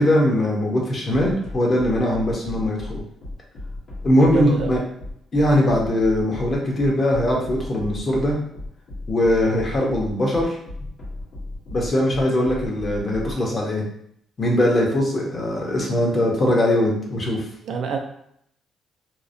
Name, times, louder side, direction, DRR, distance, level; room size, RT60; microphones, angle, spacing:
voice 1, 0.0-3.0 4.0-4.8 5.3-8.3 9.1-10.6 11.7-13.8 14.4-17.4, left 1 dB, 40° left, -2 dB, 0.8 m, -21 dB
sound 1, 1.1-13.3, left 2 dB, 65° left, 1.1 m, -34 dB
voice 2, 4.2-4.7 17.6-18.0, right 5 dB, 70° right, 3 dB, 0.4 m, -26 dB
2.8 x 2.0 x 2.5 m, 0.70 s
cardioid pair, 90°, 0 cm